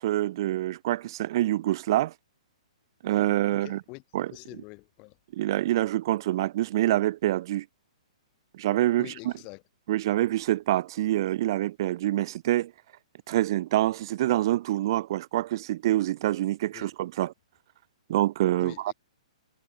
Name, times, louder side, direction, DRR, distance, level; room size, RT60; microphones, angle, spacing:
voice 1, 0.0-2.1 3.0-3.8 4.1-4.3 5.3-7.7 8.5-9.1 9.9-12.7 13.3-17.3 18.1-18.9, right 14 dB, 40° right, 0.5 m, -26 dB
voice 2, 3.5-4.0 4.3-5.2 9.0-9.6 16.7-16.9 18.6-18.9, left 31 dB, 25° left, 5.8 m, -45 dB
hypercardioid pair, 165°, 4 cm